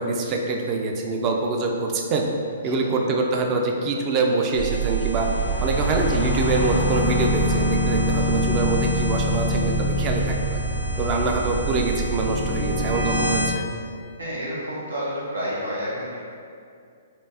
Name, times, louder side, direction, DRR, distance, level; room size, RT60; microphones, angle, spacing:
voice 1, 0.0-2.3 2.6-5.3 5.6-10.4 11.0-13.7, right 3 dB, 30° right, 1 dB, 0.4 m, -24 dB
sound 1, 4.5-13.5, right 1 dB, 70° right, 1.2 m, -24 dB
sound 2, 5.2-11.7, left 4 dB, 65° left, 0.3 m, -36 dB
voice 2, 10.9-11.2 14.2-16.2, equal, 90° right, -7 dB, 1.0 m, -30 dB
4.3 x 2.5 x 2.8 m, 2.3 s
hypercardioid pair, 135°, 0 cm